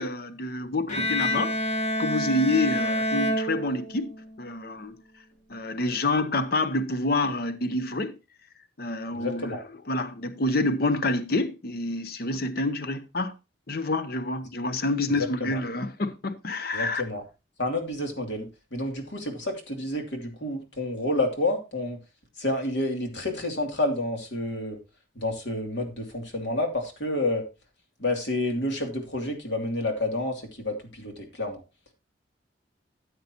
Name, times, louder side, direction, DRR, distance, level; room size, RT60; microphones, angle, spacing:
voice 1, 0.0-1.5 2.0-5.0 5.5-8.2 8.8-9.6 9.9-13.3 13.7-17.0, left 2 dB, 55° left, 0.8 m, -28 dB
Bowed string instrument, 0.9-4.2, left 1 dB, 40° left, 2.9 m, -27 dB
voice 2, 9.1-9.6 15.2-15.6 16.7-17.2 17.6-22.0 22.4-24.8 25.1-27.4 28.0-31.6, left 2 dB, 70° left, 2.6 m, -29 dB
13.5 x 8.4 x 2.9 m
head